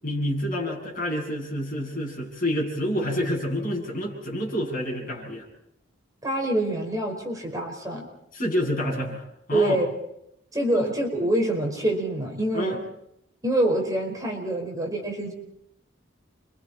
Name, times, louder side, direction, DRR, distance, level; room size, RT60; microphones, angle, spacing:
voice 1, 0.0-5.5 8.3-9.8 10.7-10.9 12.5-12.8, equal, 45° left, -1 dB, 7.8 m, -28 dB
voice 2, 6.2-8.1 9.5-9.9 10.5-12.8 13.4-15.3, right 1 dB, 20° right, 1 dB, 5.0 m, -25 dB
30.0 x 25.5 x 4.4 m, 0.76 s
head